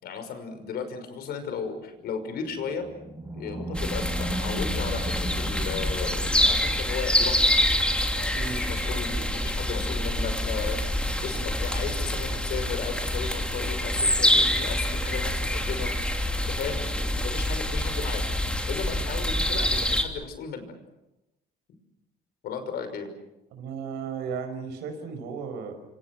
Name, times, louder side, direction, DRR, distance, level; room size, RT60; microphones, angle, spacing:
voice 1, 0.0-2.9 3.3-7.5 8.1-15.9 16.4-18.2 18.7-20.7 22.4-23.1, left 6 dB, 70° left, 8 dB, 5.9 m, -35 dB
Animal, 2.3-6.9, right 2 dB, 15° right, 4.8 m, -36 dB
sound 1, 3.7-20.0, left 1 dB, 5° left, 3.1 m, -26 dB
voice 2, 23.5-25.8, right 6 dB, 90° right, 7 dB, 5.6 m, -35 dB
28.0 x 26.0 x 6.3 m, 0.93 s
cardioid pair, 110°, 17 cm